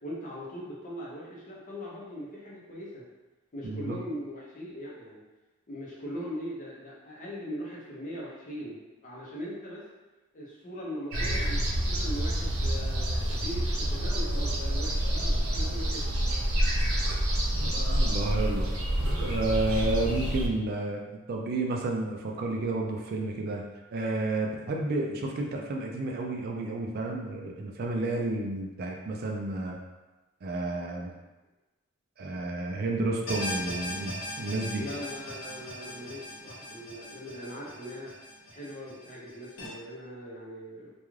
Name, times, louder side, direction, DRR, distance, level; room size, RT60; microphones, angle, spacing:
voice 1, 0.0-3.0 3.5-5.2 5.7-9.8 10.3-16.1 34.8-38.2 38.5-40.9, equal, 40° left, -5 dB, 0.7 m, -40 dB
voice 2, 3.6-4.0 17.6-18.7 19.2-21.0 21.3-23.6 23.9-29.8 30.4-31.1 32.2-34.8, right 2 dB, 45° right, 0 dB, 0.3 m, -31 dB
sound 1, 11.1-20.5, right 1 dB, 90° right, 0.6 m, -28 dB
sound 2, 33.3-39.7, equal, 65° left, 0.8 m, -39 dB
2.4 x 2.3 x 3.1 m, 1.1 s
head